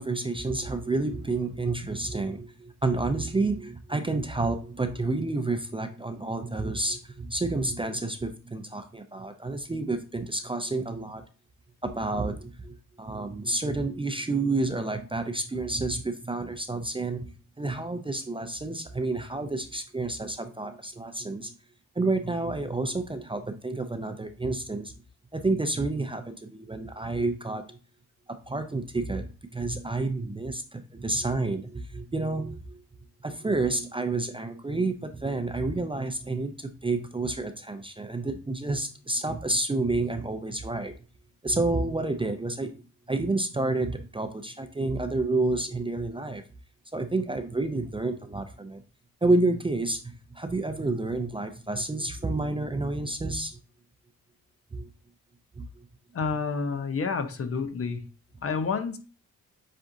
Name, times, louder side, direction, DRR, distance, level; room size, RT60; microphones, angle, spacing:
voice 1, 0.0-11.2 11.8-21.5 22.0-24.9 25.3-27.8 28.5-32.8 33.2-40.9 41.4-42.7 43.1-46.4 46.9-48.8 49.2-53.6 54.7-54.9 55.6-55.7, right 2 dB, 15° right, 7 dB, 0.5 m, -29 dB
voice 2, 56.1-58.0 58.4-59.0, left 5 dB, 40° left, 9 dB, 0.7 m, -29 dB
7.5 x 2.5 x 2.6 m, 0.36 s
cardioid pair, 70°, 34 cm